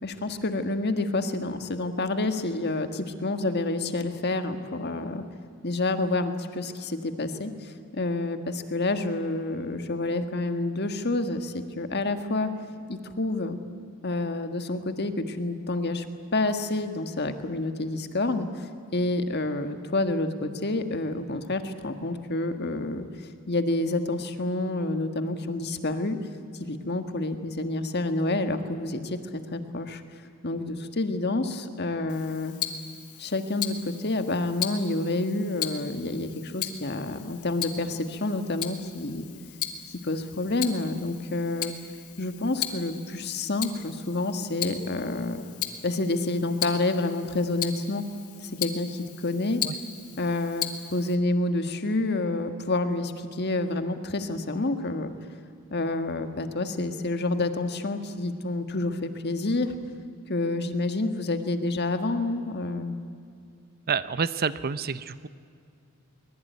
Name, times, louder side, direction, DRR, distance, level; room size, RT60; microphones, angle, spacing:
voice 1, 0.0-5.2 5.6-12.5 12.9-13.6 14.0-16.0 16.3-23.1 23.5-26.2 26.6-30.0 30.4-32.5 33.2-39.3 39.9-41.7 42.2-45.4 45.8-48.1 48.4-49.6 50.2-50.6 50.9-55.1 55.7-59.8 60.3-63.0, left 2 dB, 45° left, 8 dB, 1.6 m, -28 dB
Tick-tock, 32.1-51.2, left 11 dB, 80° left, 2.0 m, -37 dB
voice 2, 63.9-65.3, right 6 dB, 40° right, 15 dB, 0.6 m, -28 dB
23.0 x 21.0 x 9.4 m, 2.4 s
head